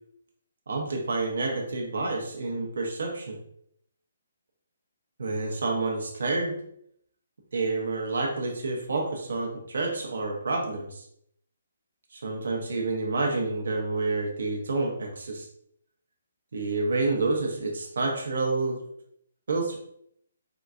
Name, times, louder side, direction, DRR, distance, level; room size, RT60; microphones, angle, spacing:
voice 1, 0.7-3.4 5.2-6.6 7.5-11.0 12.1-15.5 16.5-18.8 19.5-19.8, right 3 dB, 75° right, 0 dB, 0.7 m, -29 dB
3.8 x 2.2 x 2.4 m, 0.70 s
hypercardioid pair, 160°, 0 cm